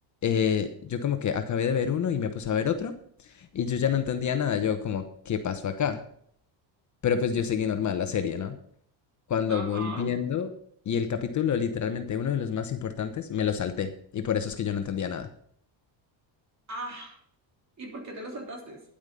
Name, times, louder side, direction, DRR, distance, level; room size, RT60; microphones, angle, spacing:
voice 1, 0.2-2.9 3.2-6.0 7.0-8.6 9.3-10.5 10.9-15.3, left 8 dB, 40° left, 8 dB, 1.0 m, -28 dB
voice 2, 9.5-10.1 16.7-17.2 17.8-18.8, right 2 dB, 35° right, 1 dB, 3.6 m, -38 dB
10.0 x 8.7 x 5.5 m, 0.64 s
cardioid pair, 125°, 47 cm